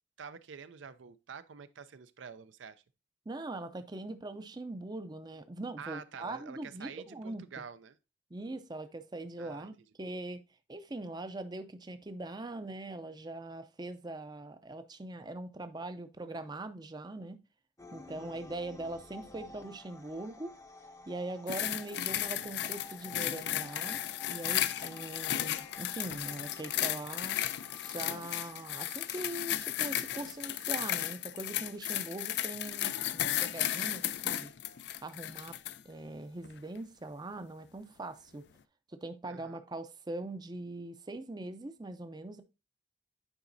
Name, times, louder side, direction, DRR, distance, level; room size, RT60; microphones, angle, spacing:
voice 1, 0.2-2.8 5.8-8.0 9.4-9.7 18.1-18.4 39.3-39.6, right 6 dB, 75° right, 0.5 m, -47 dB
voice 2, 3.3-7.4 8.3-10.4 10.7-17.4 17.9-20.5 21.1-24.0 24.3-27.4 27.8-34.5 35.0-35.6 35.8-38.5 39.0-42.4, right 2 dB, 20° right, 0.5 m, -41 dB
sound 1, 17.8-31.2, left 2 dB, 15° left, 0.6 m, -53 dB
sound 2, 21.5-35.8 36.4-36.6, left 12 dB, 60° left, 0.3 m, -34 dB
9.8 x 5.0 x 2.6 m
head